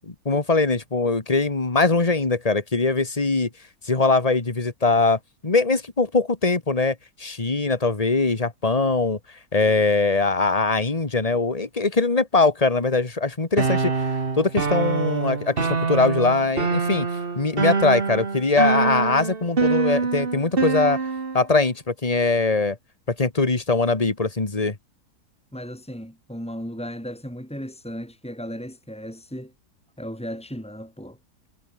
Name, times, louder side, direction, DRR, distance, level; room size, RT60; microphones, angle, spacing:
voice 1, 0.1-3.5 3.8-9.2 9.5-13.9 14.4-17.1 17.4-21.0 21.3-22.8 23.1-24.8, left 3 dB, 20° left, 2.0 m, -22 dB
sound 1, 13.6-21.4, right 4 dB, 35° right, 1.8 m, -24 dB
voice 2, 25.5-29.5 30.0-31.2, equal, 5° left, 6.1 m, -35 dB
omnidirectional pair, 1.7 m